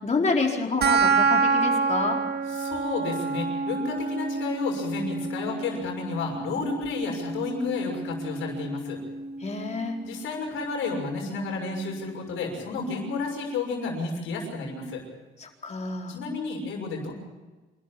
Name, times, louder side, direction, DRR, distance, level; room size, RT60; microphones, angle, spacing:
voice 1, 0.0-2.2 9.4-9.9 15.4-16.2, left 3 dB, 35° left, 1 dB, 4.4 m, -28 dB
sound 1, 0.8-11.8, right 4 dB, 55° right, 1.6 m, -28 dB
voice 2, 2.5-9.0 10.0-15.0 16.1-17.1, left 4 dB, 85° left, 2 dB, 6.4 m, -31 dB
27.5 x 13.0 x 8.5 m, 1.2 s
cardioid pair, 90°, 20 cm